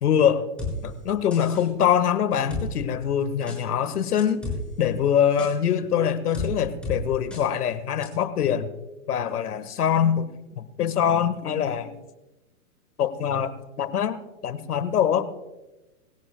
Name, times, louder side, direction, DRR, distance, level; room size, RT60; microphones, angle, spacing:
voice 1, 0.0-0.5 0.8-4.5 4.8-8.8 9.1-10.3 10.6-12.0 13.0-15.3, left 8 dB, 75° left, 1.5 m, -24 dB
sound 1, 0.6-0.7 1.3-1.7 2.5-2.6 3.5-3.6 4.2-4.6 5.4-5.5 6.3-6.5 6.8-7.0 7.3-7.4 8.0-8.1, left 4 dB, ahead, 5.8 m, -32 dB
23.5 x 16.5 x 2.2 m
hypercardioid pair, 140°, 45 cm